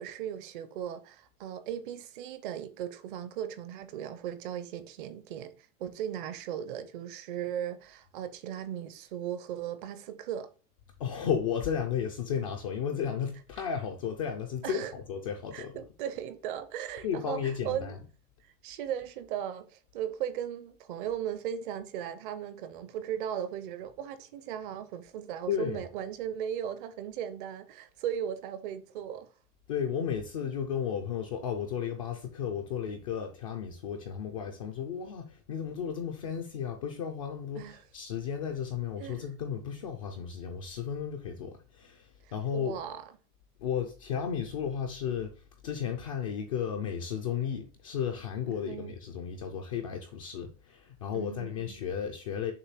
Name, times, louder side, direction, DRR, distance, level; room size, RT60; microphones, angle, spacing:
voice 1, 0.0-10.5 13.6-13.7 14.6-14.9 15.5-18.0 18.4-29.3 37.5-37.8 39.0-39.3 42.2-43.0 48.5-49.0 51.1-51.8, right 9 dB, 35° right, 0.6 m, -37 dB
voice 2, 11.0-15.8 17.0-18.0 25.5-25.8 29.7-42.8 43.6-45.3 45.6-52.5, left 8 dB, 25° left, 0.3 m, -34 dB
6.7 x 2.7 x 5.6 m
supercardioid pair, 155°, 44 cm